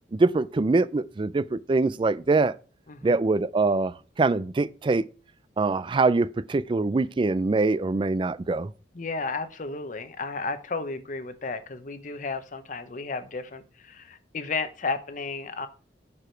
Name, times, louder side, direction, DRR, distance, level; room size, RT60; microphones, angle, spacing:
voice 1, 0.1-2.5 3.0-5.0 5.6-8.7, right 3 dB, 30° right, 0.3 m, -24 dB
voice 2, 2.9-3.2 8.9-15.7, left 4 dB, 45° left, 0.8 m, -33 dB
9.7 x 4.9 x 4.5 m
head